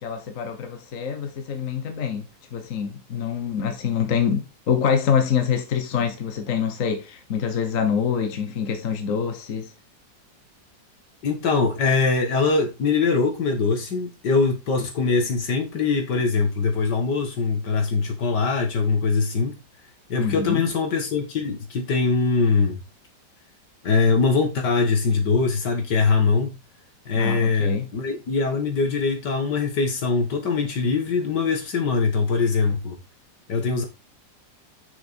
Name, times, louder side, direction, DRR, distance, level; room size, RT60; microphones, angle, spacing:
voice 1, 0.0-9.7 20.2-20.6 27.1-27.9, left 7 dB, 50° left, 1.3 m, -25 dB
voice 2, 11.2-19.6 20.1-22.8 23.8-26.5 27.1-33.0 33.5-33.9, left 4 dB, 65° left, 2.4 m, -22 dB
6.8 x 6.2 x 4.4 m
omnidirectional pair, 2.0 m